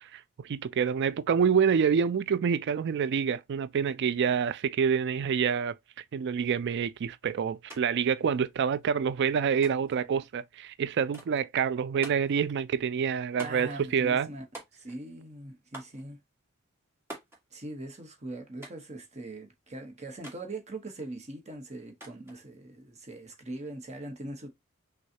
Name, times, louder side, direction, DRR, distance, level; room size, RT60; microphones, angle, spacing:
voice 1, 0.0-5.8 6.1-14.3, right 7 dB, 55° right, 0.4 m, -27 dB
sound 1, 7.7-7.8 8.1-8.8 9.6-10.0 11.1-11.5 12.0-12.4 13.4-13.8 14.5-15.1 15.7-16.0 17.1-17.4 18.6-18.9 20.2-20.5 22.0-22.4, right 1 dB, 10° right, 1.7 m, -46 dB
voice 2, 13.4-14.4 14.7-16.2 17.5-24.5, right 2 dB, 35° right, 1.1 m, -41 dB
6.2 x 2.4 x 2.8 m
head